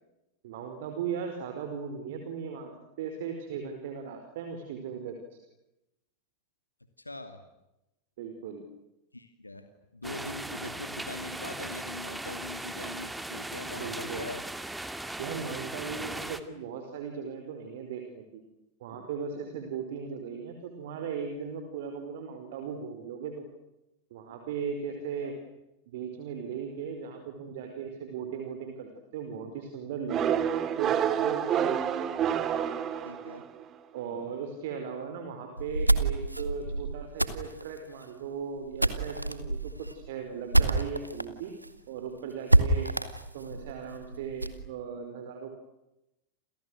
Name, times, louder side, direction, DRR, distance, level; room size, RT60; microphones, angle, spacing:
voice 1, 0.4-5.2 8.2-8.7 13.8-14.3 15.2-18.4 18.8-23.5 24.1-25.3 25.9-31.7 33.9-41.5 41.9-42.9 43.3-45.6, right 6 dB, 55° right, 5 dB, 4.9 m, -38 dB
voice 2, 7.0-7.4 9.1-9.7 9.9-14.4 25.2-25.3 33.0-33.4, left 2 dB, 85° left, 8 dB, 2.5 m, -42 dB
sound 1, 10.0-16.4, right 1 dB, 5° right, 2.4 m, -38 dB
sound 2, 30.1-33.6, right 9 dB, 30° right, 2.5 m, -28 dB
sound 3, 35.6-41.3 41.6-41.7 42.0-42.1 42.5-44.6, right 2 dB, 85° right, 2.2 m, -27 dB
30.0 x 29.0 x 6.5 m, 0.92 s
figure-of-eight pair, 90°, 0 cm